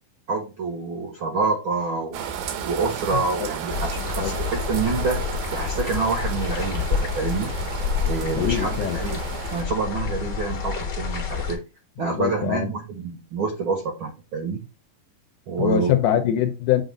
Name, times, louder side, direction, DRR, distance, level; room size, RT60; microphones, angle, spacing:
voice 1, 0.3-2.2 2.6-5.2 5.5-7.5 8.0-9.2 9.5-11.6 12.0-14.6 15.5-16.0, right 4 dB, 70° right, 1.2 m, -27 dB
sound 1, 2.1-9.6, right 7 dB, 85° right, 2.8 m, -33 dB
snowy lake, 3.7-11.6, left 6 dB, 55° left, 1.2 m, -28 dB
voice 2, 4.0-4.3 8.4-9.0 12.0-12.7 15.6-16.8, left 10 dB, 75° left, 2.0 m, -23 dB
7.8 x 2.6 x 5.1 m
omnidirectional pair, 4.1 m